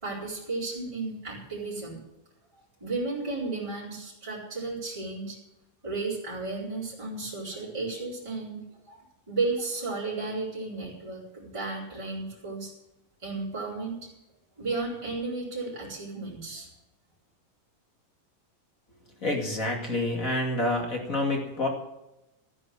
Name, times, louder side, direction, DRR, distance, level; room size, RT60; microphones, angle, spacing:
voice 1, 0.0-2.0 2.8-5.4 5.8-9.0 9.3-12.7 13.2-14.0 14.6-16.7, right 3 dB, 10° right, -8 dB, 4.4 m, -33 dB
voice 2, 19.2-21.7, left 2 dB, 25° left, 1 dB, 2.3 m, -28 dB
14.5 x 9.7 x 7.8 m, 0.89 s
omnidirectional pair, 4.0 m